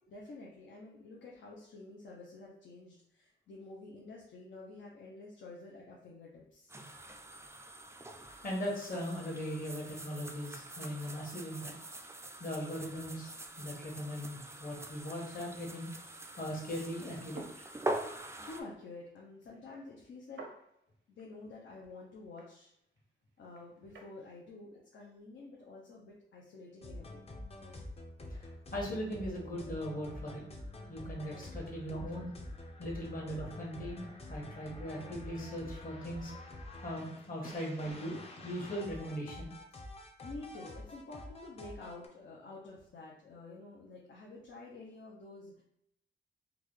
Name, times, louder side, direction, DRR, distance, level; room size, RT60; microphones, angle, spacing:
voice 1, 0.1-6.8 18.5-20.5 21.1-22.7 23.4-27.3 30.0-30.1 30.4-30.5 31.6-32.0 40.2-45.6, left 3 dB, 75° left, -3 dB, 0.7 m, -50 dB
sound 1, 6.7-18.6, right 1 dB, 15° right, 0.3 m, -44 dB
voice 2, 8.4-11.7 12.4-15.9 16.4-17.7 28.3-30.4 30.9-32.3 32.8-36.3 36.8-38.2 38.4-39.5, equal, 45° left, -2 dB, 1.3 m, -39 dB
sound 2, 17.0-24.2, right 3 dB, 80° right, 0.7 m, -55 dB
sound 3, 26.8-42.1, left 1 dB, 30° left, 0.6 m, -47 dB
3.8 x 2.3 x 3.2 m, 0.79 s
wide cardioid pair, 105°, 19 cm